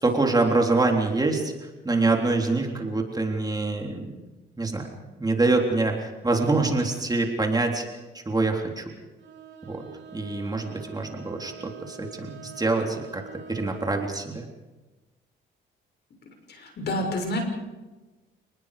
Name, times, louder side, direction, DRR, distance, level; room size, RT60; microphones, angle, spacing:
voice 1, 0.0-4.1 4.6-7.8 8.1-8.8 9.6-9.8 10.1-13.2 13.5-14.4, right 3 dB, 20° right, 2 dB, 3.6 m, -25 dB
Bowed string instrument, 9.2-14.2, right 6 dB, 60° right, 3.7 m, -45 dB
voice 2, 16.5-17.4, left 1 dB, 55° left, 3 dB, 6.3 m, -28 dB
29.5 x 20.0 x 5.1 m, 1.2 s
cardioid pair, 90°, 20 cm